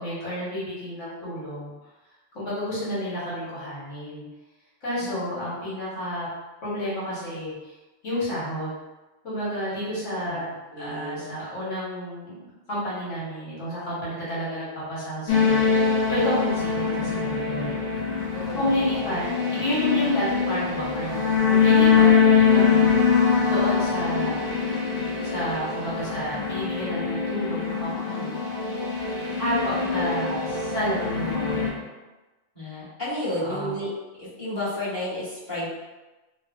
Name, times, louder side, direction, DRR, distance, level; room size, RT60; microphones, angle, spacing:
voice 1, 0.0-1.7 2.3-4.3 4.8-6.3 6.6-7.5 8.0-8.7 9.2-10.5 10.8-12.4 12.7-15.8 16.1-17.8 18.5-19.2 19.5-22.1 22.5-22.9 23.5-24.6 25.2-28.4 29.4-31.8 33.4-33.7, equal, 85° left, -9 dB, 1.5 m, -30 dB
voice 2, 5.0-5.5 10.3-10.4 10.7-11.3 18.3-18.7 32.5-33.9 34.2-35.7, left 1 dB, 25° left, -12 dB, 1.1 m, -32 dB
sound 1, 15.3-31.7, left 6 dB, 60° left, 0.8 m, -23 dB
3.1 x 2.1 x 2.4 m, 1.1 s
omnidirectional pair, 1.2 m